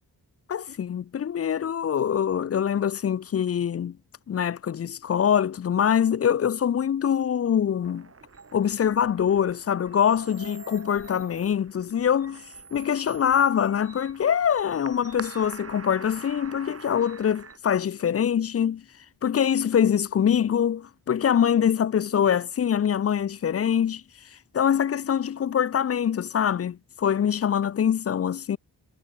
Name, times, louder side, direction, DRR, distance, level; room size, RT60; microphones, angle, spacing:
voice 1, 0.5-4.0 4.3-8.1 8.5-12.5 12.7-18.8 19.2-24.0 24.5-28.6, left 8 dB, 40° left, 0.4 m, -24 dB
sound 1, 7.8-17.6, right 5 dB, 35° right, 4.3 m, -45 dB
wide cardioid pair, 175°, 39 cm